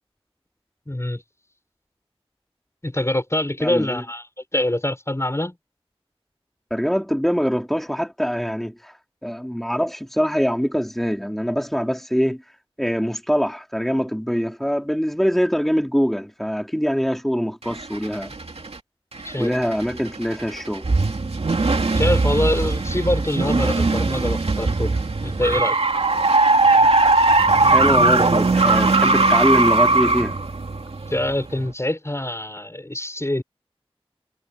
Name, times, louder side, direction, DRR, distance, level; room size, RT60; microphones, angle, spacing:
voice 1, 0.9-1.2 2.8-4.2 4.5-5.6 19.2-19.5 21.9-25.7 31.1-33.4, left 1 dB, 25° left, 6.4 m, -24 dB
voice 2, 3.6-4.0 6.7-9.0 9.2-12.4 12.8-18.4 19.4-20.8 27.7-30.4, equal, ahead, 3.7 m, -23 dB
sound 1, 17.6-18.8 19.2-31.7, right 3 dB, 80° right, 2.6 m, -19 dB
wide cardioid pair, 50°, 10 cm